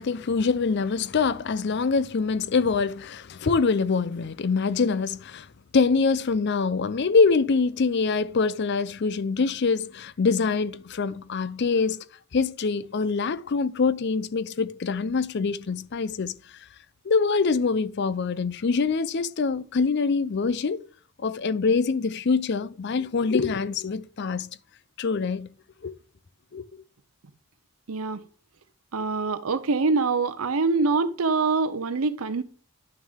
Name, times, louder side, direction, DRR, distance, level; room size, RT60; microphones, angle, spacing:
voice 1, 0.0-5.5 5.7-12.0 12.3-16.4 17.0-20.8 21.2-24.6 25.0-25.5 25.8-25.9 26.5-26.8, left 4 dB, 50° left, 0.5 m, -24 dB
voice 2, 27.9-28.2 28.9-32.4, right 4 dB, 75° right, 0.7 m, -24 dB
11.0 x 6.3 x 3.6 m
head